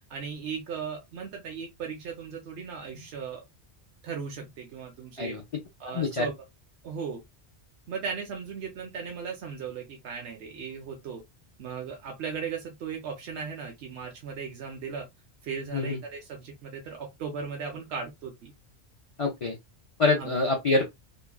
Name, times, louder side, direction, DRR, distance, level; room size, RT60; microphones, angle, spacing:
voice 1, 0.1-3.4 4.0-5.4 5.8-6.3 6.8-7.2 7.9-11.2 11.6-15.1 15.4-18.5 20.2-20.3, right 6 dB, 75° right, 0.9 m, -37 dB
voice 2, 5.9-6.3 15.7-16.0 19.2-19.6 20.0-20.9, left 3 dB, 45° left, 0.5 m, -26 dB
3.0 x 2.3 x 2.2 m
omnidirectional pair, 1.1 m